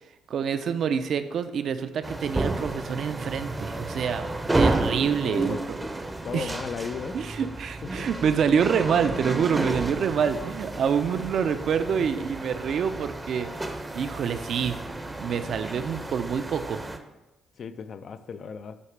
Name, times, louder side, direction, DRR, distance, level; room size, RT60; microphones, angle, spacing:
voice 1, 0.3-5.8 6.3-6.5 7.1-13.5 13.9-14.8 15.2-16.8, right 7 dB, 65° right, 0.4 m, -26 dB
sound 1, 2.0-17.0, right 2 dB, 15° right, 0.6 m, -31 dB
voice 2, 5.2-5.9 6.2-7.2 7.8-8.1 10.1-10.2 12.0-12.1 17.6-18.8, left 6 dB, 55° left, 0.4 m, -36 dB
8.1 x 2.8 x 4.7 m
cardioid pair, 90°, 0 cm